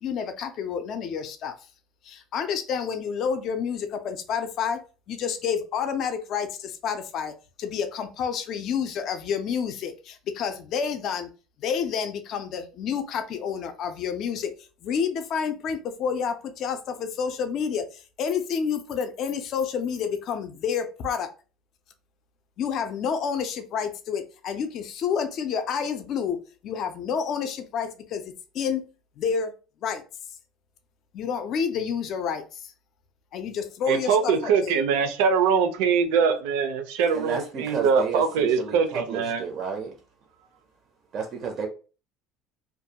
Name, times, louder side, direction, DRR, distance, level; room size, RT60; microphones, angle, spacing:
voice 1, 0.0-1.6 2.0-4.8 5.1-11.3 11.6-14.5 14.8-21.3 22.6-28.9 29.2-29.5 29.8-30.0 31.1-32.6 33.3-34.8, left 7 dB, 40° left, 0.4 m, -29 dB
voice 2, 33.9-39.4, right 6 dB, 90° right, 0.5 m, -23 dB
voice 3, 37.1-40.0 41.1-41.7, right 6 dB, 35° right, 0.4 m, -32 dB
2.5 x 2.2 x 2.7 m
cardioid pair, 170°, 0 cm